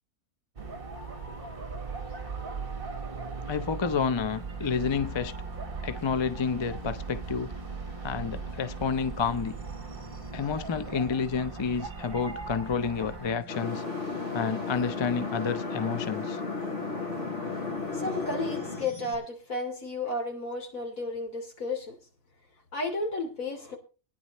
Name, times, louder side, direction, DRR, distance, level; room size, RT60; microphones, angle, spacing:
sound 1, 0.6-13.4, right 4 dB, 40° right, 1.8 m, -39 dB
voice 1, 3.5-5.3 5.8-7.5 8.0-9.5 10.3-13.8 14.3-16.4, left 5 dB, 35° left, 0.4 m, -29 dB
sound 2, 4.3-19.1, right 2 dB, 25° right, 3.6 m, -47 dB
sound 3, 13.5-18.9, left 4 dB, 55° left, 3.8 m, -34 dB
voice 2, 17.9-22.0 22.7-23.8, left 2 dB, 70° left, 3.4 m, -33 dB
20.5 x 10.0 x 3.1 m
omnidirectional pair, 1.5 m